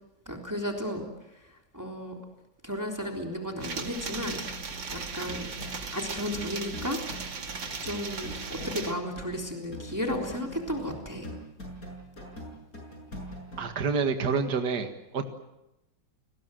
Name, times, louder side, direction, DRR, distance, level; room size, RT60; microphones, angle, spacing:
voice 1, 0.3-1.0 1.7-2.1 2.6-4.4 4.6-5.5 5.9-7.4 7.8-11.3, equal, 10° right, 1 dB, 3.5 m, -34 dB
sound 1, 3.6-8.9, right 5 dB, 80° right, 3.0 m, -37 dB
sound 2, 4.1-13.6, equal, 50° left, 7.3 m, -43 dB
voice 2, 13.6-15.3, right 5 dB, 60° right, 6 dB, 2.4 m, -28 dB
29.5 x 21.0 x 7.7 m, 0.92 s
omnidirectional pair, 2.0 m